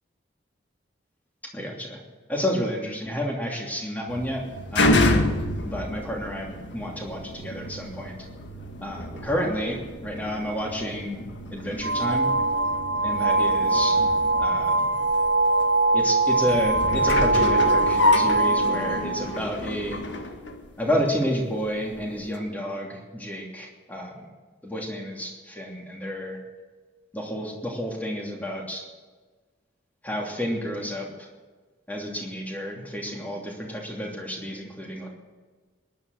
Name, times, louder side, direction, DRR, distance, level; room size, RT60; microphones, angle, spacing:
voice 1, 1.5-2.0 2.3-4.4 4.7-5.1 5.6-8.1 8.8-11.2 11.5-12.3 13.0-14.0 14.4-14.9 15.9-20.0 20.8-24.2 24.6-26.4 27.1-28.8 30.0-31.3 31.9-35.1, equal, 10° left, -1 dB, 3.0 m, -30 dB
sound 1, 4.1-21.4 22.0-22.1, left 2 dB, 75° left, 1.6 m, -29 dB
sound 2, 11.8-19.4, right 2 dB, 70° right, 0.6 m, -22 dB
19.5 x 11.0 x 6.6 m, 1.4 s
head